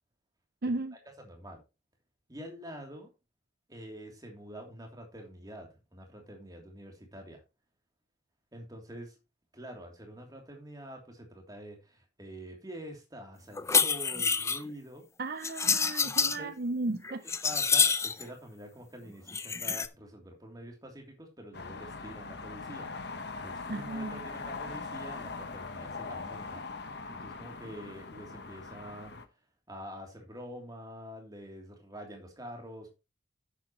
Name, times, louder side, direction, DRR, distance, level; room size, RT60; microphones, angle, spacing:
voice 1, 0.6-0.9 15.2-17.2 23.7-24.2, right 2 dB, 50° right, 0.5 m, -34 dB
voice 2, 1.2-1.6 2.3-3.1 3.7-7.4 8.5-9.1 9.5-15.0 16.0-16.5 17.0-17.2 17.4-22.9 23.3-29.2 29.7-32.9, equal, 20° right, 3.0 m, -46 dB
sound 1, 13.6-14.6 15.4-16.4 16.9-18.2 19.3-19.9, left 5 dB, 15° left, 0.4 m, -27 dB
sound 2, 21.5-29.3, left 4 dB, 55° left, 1.1 m, -41 dB
10.5 x 8.5 x 3.0 m
head